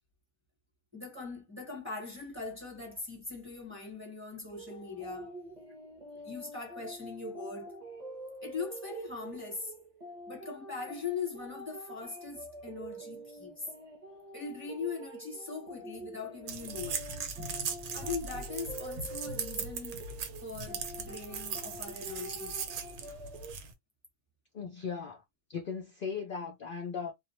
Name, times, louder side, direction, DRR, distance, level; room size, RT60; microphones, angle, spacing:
voice 1, 0.9-5.3 6.2-7.7 8.4-9.7 10.3-13.7 14.3-17.0 17.9-20.0 20.4-22.6, left 4 dB, 10° right, 0.9 m, -40 dB
sound 1, 4.5-23.5, right 1 dB, 35° right, 0.7 m, -46 dB
sound 2, 16.5-23.7, right 6 dB, 90° right, 1.1 m, -39 dB
voice 2, 24.5-25.2 25.5-27.1, left 6 dB, 60° left, 0.5 m, -37 dB
2.4 x 2.1 x 3.1 m
omnidirectional pair, 1.5 m